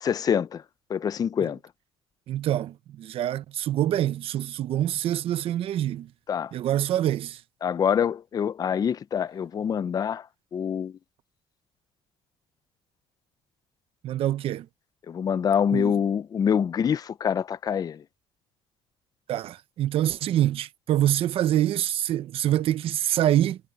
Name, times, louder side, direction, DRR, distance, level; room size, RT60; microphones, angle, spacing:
voice 1, 0.0-0.6 0.9-1.6 6.3-6.5 7.6-10.2 10.5-10.9 15.1-18.0, left 8 dB, 35° left, 0.6 m, -25 dB
voice 2, 2.3-6.1 6.5-7.4 14.0-14.7 15.7-15.9 19.3-23.6, right 12 dB, 65° right, 1.1 m, -25 dB
cardioid pair, 100°, 10 cm